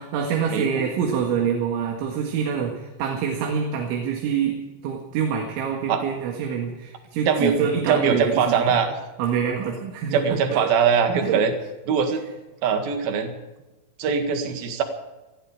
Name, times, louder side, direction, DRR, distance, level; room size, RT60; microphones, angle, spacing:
voice 1, 0.0-8.8 9.2-10.2 10.5-10.7 11.2-11.4, right 7 dB, 90° right, 1 dB, 4.3 m, -26 dB
voice 2, 0.5-0.9 5.9-6.0 7.3-8.9 10.1-11.5 11.9-12.2 12.6-13.4 14.0-14.8, right 6 dB, 60° right, 6 dB, 3.3 m, -22 dB
19.5 x 14.5 x 5.0 m, 1.1 s
omnidirectional pair, 5.3 m